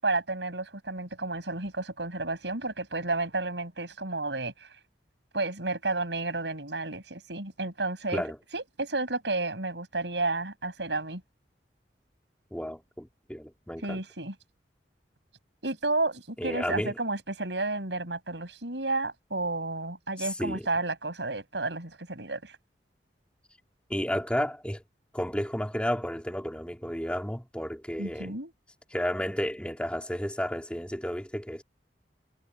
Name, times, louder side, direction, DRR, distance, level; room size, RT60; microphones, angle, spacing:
voice 1, 0.0-4.7 5.3-8.2 8.5-11.2 13.8-14.3 15.6-22.6 28.0-28.5, right 2 dB, 80° right, 7.9 m, -31 dB
voice 2, 12.5-14.0 16.4-17.0 20.2-20.7 23.9-24.8 25.1-28.3 28.9-31.6, equal, 5° left, 3.4 m, -32 dB
head